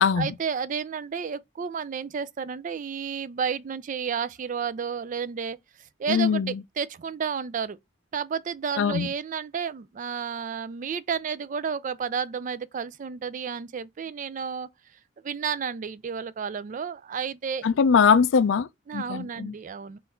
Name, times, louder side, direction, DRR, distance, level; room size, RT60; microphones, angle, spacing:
voice 1, 0.2-7.8 8.1-14.7 15.2-17.6 18.9-20.0, right 6 dB, 45° right, 0.4 m, -31 dB
voice 2, 6.1-6.5 8.8-9.1 17.6-18.7 18.9-19.5, left 6 dB, 80° left, 0.4 m, -21 dB
3.8 x 2.6 x 4.3 m
head